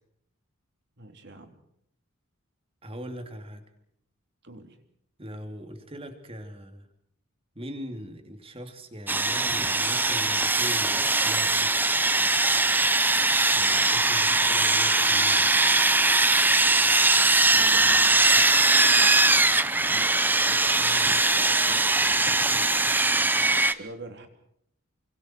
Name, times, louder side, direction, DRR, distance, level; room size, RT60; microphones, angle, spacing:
voice 1, 1.0-1.5 4.4-4.8 14.0-14.3 17.5-18.3 19.8-21.9 22.2-22.9 23.7-24.3, right 1 dB, 55° right, 5 dB, 3.8 m, -45 dB
voice 2, 2.8-3.6 5.2-6.9 7.5-11.8 13.5-15.5, equal, 25° right, 6 dB, 3.1 m, -40 dB
Sawing, 9.1-23.7, right 2 dB, 10° right, 0.8 m, -21 dB
29.5 x 25.5 x 4.7 m, 0.72 s
head